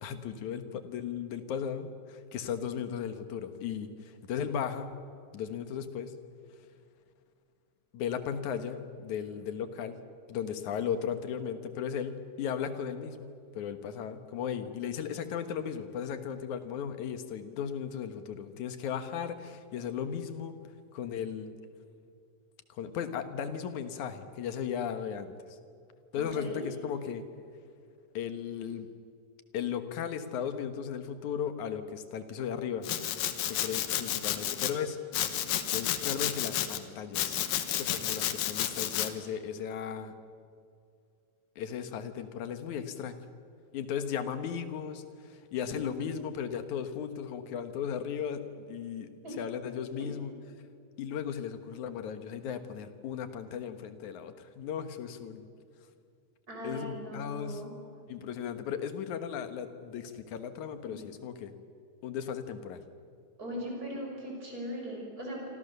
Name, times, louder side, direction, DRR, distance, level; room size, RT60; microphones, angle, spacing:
voice 1, 0.0-4.9 5.3-6.1 7.9-10.0 10.3-20.5 20.9-21.5 22.7-25.6 26.1-27.2 28.1-28.9 29.5-32.9 33.4-35.0 35.7-37.4 37.7-40.1 41.6-43.2 43.7-49.1 49.4-50.3 51.0-55.5 56.6-57.6 58.1-61.5 62.0-62.8, left 8 dB, 65° left, 9 dB, 2.6 m, -36 dB
voice 2, 26.1-26.6 49.2-49.4 50.0-50.1 56.5-57.7 60.9-61.0 63.4-65.5, equal, 25° right, -1 dB, 6.6 m, -39 dB
Domestic sounds home sounds, 32.8-34.7 35.1-36.8 37.1-39.1, left 11 dB, 85° left, 2.9 m, -31 dB
27.5 x 25.0 x 6.8 m, 2.3 s
omnidirectional pair, 3.9 m